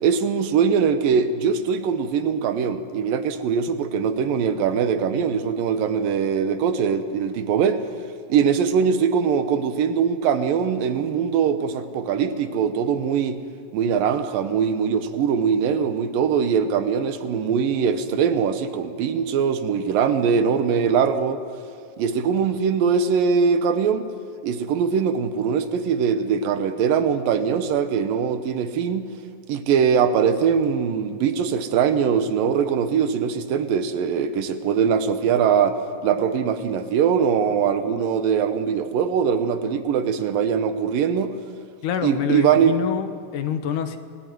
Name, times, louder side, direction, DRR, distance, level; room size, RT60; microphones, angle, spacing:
voice 1, 0.0-7.8 8.3-13.4 13.7-21.4 22.0-24.1 24.4-29.1 29.5-41.3 42.0-42.7, right 7 dB, 80° right, 10 dB, 2.9 m, -22 dB
voice 2, 41.8-44.0, left 8 dB, 70° left, 9 dB, 2.7 m, -26 dB
28.0 x 18.5 x 9.4 m, 2.2 s
omnidirectional pair, 4.0 m